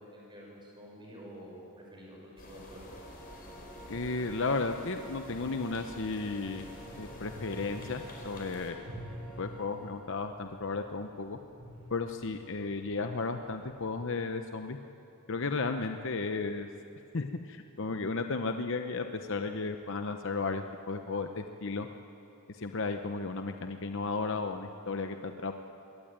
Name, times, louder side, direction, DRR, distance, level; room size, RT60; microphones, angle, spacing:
voice 1, 0.0-2.9, equal, 20° right, -2 dB, 6.2 m, -49 dB
sound 1, 2.4-8.7, left 1 dB, 45° left, 4.2 m, -49 dB
sound 2, 2.5-10.3, right 1 dB, 5° left, 3.4 m, -51 dB
voice 2, 3.9-6.6 7.0-8.8 9.4-11.4 11.9-14.8 15.3-16.7 17.1-21.9 22.6-25.5, left 3 dB, 60° left, 6 dB, 0.8 m, -34 dB
sound 3, 6.3-14.0, equal, 85° right, 6.6 m, -50 dB
21.5 x 17.5 x 9.0 m, 2.8 s
head